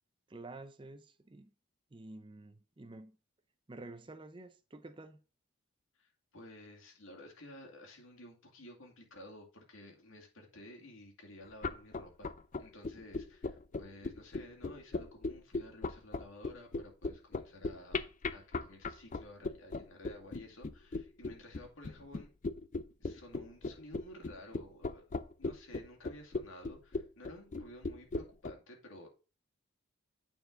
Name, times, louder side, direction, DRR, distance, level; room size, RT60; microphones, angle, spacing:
voice 1, 0.3-1.5 1.9-3.1 3.7-5.2, right 2 dB, 25° right, 0.5 m, -50 dB
voice 2, 6.0-12.3 12.6-18.0 18.3-22.3 23.0-25.0 25.4-29.1, left 1 dB, 70° left, 2.3 m, -53 dB
sound 1, 11.5-28.5, left 3 dB, 35° left, 0.4 m, -37 dB
9.1 x 4.4 x 3.8 m
head